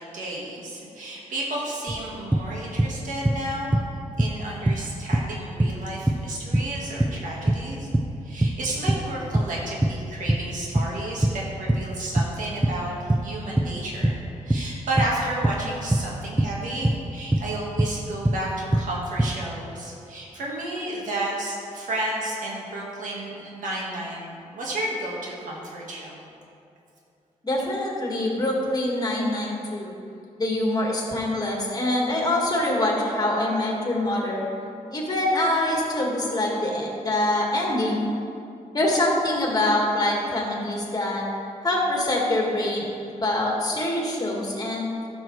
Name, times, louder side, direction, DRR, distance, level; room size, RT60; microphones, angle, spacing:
voice 1, 0.0-7.9 8.2-14.1 14.4-26.3, right 1 dB, 80° right, -4 dB, 1.7 m, -32 dB
sound 1, 1.9-3.0 3.3-4.4 4.7-10.5 10.8-18.0 18.3-19.3, right 1 dB, 10° right, 0.5 m, -23 dB
voice 2, 27.4-29.9 30.4-34.5 34.9-38.1 38.7-41.2 41.6-42.9 43.2-44.9, left 1 dB, 30° left, -2 dB, 1.9 m, -24 dB
12.5 x 6.3 x 3.2 m, 2.6 s
cardioid pair, 95°, 13 cm